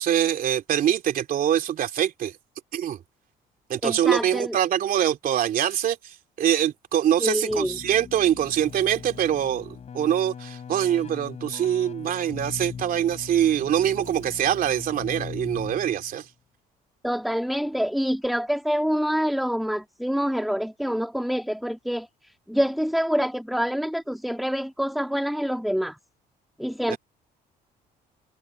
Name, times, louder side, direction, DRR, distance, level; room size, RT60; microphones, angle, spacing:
voice 1, 0.0-2.3 2.7-3.0 3.7-16.3 26.9-27.0, right 10 dB, 55° right, 3.0 m, -24 dB
voice 2, 3.8-4.6 7.2-7.8 17.0-22.1 22.5-26.0 26.6-27.0, equal, ahead, 2.2 m, -26 dB
Keyboard (musical), 7.5-16.2, left 7 dB, 40° left, 6.5 m, -40 dB
cardioid pair, 110°, 17 cm